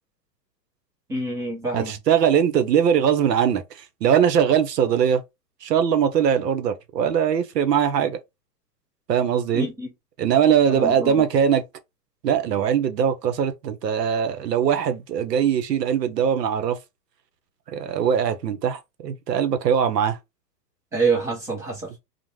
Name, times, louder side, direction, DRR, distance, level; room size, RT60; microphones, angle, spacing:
voice 1, 1.1-2.0 9.5-9.9 10.7-11.3 20.9-22.0, right 3 dB, 5° right, 0.4 m, -26 dB
voice 2, 1.7-3.6 4.0-5.2 5.6-8.2 9.1-9.7 10.2-11.6 12.2-16.8 17.7-20.2, right 8 dB, 80° right, 0.8 m, -21 dB
2.5 x 2.1 x 3.0 m
hypercardioid pair, 120°, 49 cm